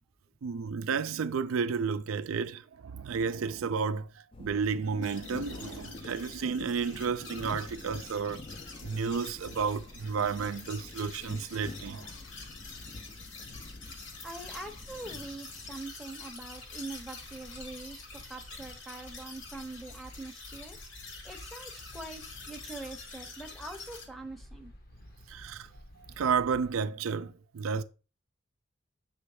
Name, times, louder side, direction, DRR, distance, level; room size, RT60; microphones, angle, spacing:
voice 1, 0.4-4.1 4.4-8.4 8.8-12.1 25.3-25.7 26.2-27.8, right 5 dB, 80° right, 0.4 m, -32 dB
sound 1, 4.3-15.8, left 2 dB, 25° left, 0.3 m, -47 dB
sound 2, 5.0-24.1, left 4 dB, 60° left, 1.4 m, -47 dB
voice 2, 14.2-18.0 18.3-20.8 21.2-24.7, right 2 dB, ahead, 0.7 m, -43 dB
sound 3, 15.5-26.8, equal, 45° left, 0.8 m, -52 dB
7.0 x 3.2 x 4.8 m
head